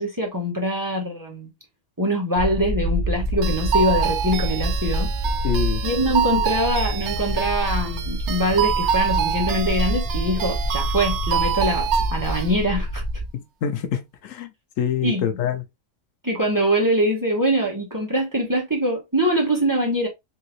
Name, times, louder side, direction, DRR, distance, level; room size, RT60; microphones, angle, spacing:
voice 1, 0.0-1.5 2.0-5.1 5.8-13.0 15.0-15.3 16.2-20.1, equal, 15° right, 1.0 m, -23 dB
sound 1, 2.4-13.3, equal, 40° right, 0.5 m, -26 dB
sound 2, 3.4-12.5, right 9 dB, 70° right, 0.8 m, -26 dB
voice 2, 5.4-5.8 13.3-14.5 14.8-15.6, left 8 dB, 90° left, 1.1 m, -25 dB
3.5 x 2.8 x 3.0 m
omnidirectional pair, 1.3 m